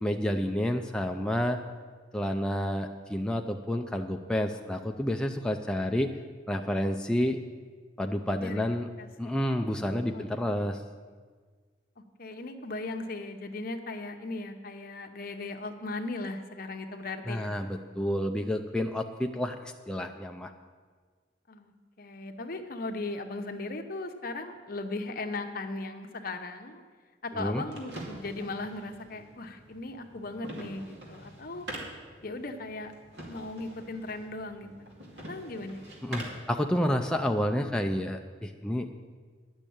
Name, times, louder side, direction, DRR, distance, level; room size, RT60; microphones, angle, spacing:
voice 1, 0.0-1.6 2.1-6.1 6.5-7.4 8.0-8.9 9.2-10.8 17.3-20.5 27.4-27.6 36.0-38.9, equal, 5° left, 3 dB, 0.4 m, -29 dB
voice 2, 12.0-17.5 21.5-26.8 27.2-31.6 32.2-32.9 33.3-35.0 35.3-35.8, left 2 dB, 50° left, 6 dB, 0.9 m, -38 dB
sound 1, 27.3-36.5, right 1 dB, 65° right, 2.4 m, -45 dB
10.5 x 6.4 x 8.5 m, 1.6 s
head